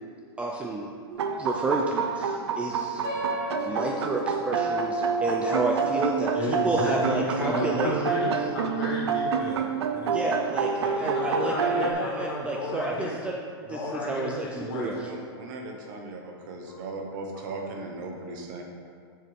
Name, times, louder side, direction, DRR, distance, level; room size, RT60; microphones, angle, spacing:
voice 1, 0.4-0.9 1.4-3.0 3.6-8.3 10.1-13.4 13.7-15.1, right 2 dB, 10° right, -1 dB, 0.3 m, -30 dB
sound 1, 1.1-11.9, right 5 dB, 80° right, 0.7 m, -28 dB
sound 2, 3.0-8.0, left 1 dB, 35° left, 2.1 m, -39 dB
voice 2, 6.4-10.2 10.8-13.1 13.6-15.0 16.7-16.8 17.3-17.4, left 2 dB, 65° left, -3 dB, 2.1 m, -32 dB
voice 3, 14.7-18.6, right 2 dB, 50° right, 1 dB, 1.2 m, -38 dB
8.1 x 6.5 x 3.5 m, 2.1 s
supercardioid pair, 160°, 14 cm